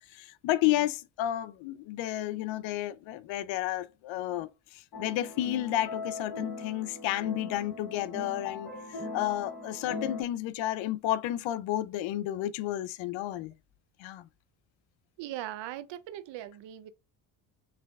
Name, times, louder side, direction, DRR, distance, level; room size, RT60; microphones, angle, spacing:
voice 1, 0.1-13.5 14.0-14.3, left 13 dB, 85° left, 0.5 m, -32 dB
sound 1, 4.9-10.2, left 3 dB, 65° left, 2.2 m, -40 dB
voice 2, 15.2-16.9, right 13 dB, 75° right, 0.6 m, -39 dB
5.7 x 3.3 x 2.3 m
cardioid pair, 125°, 44 cm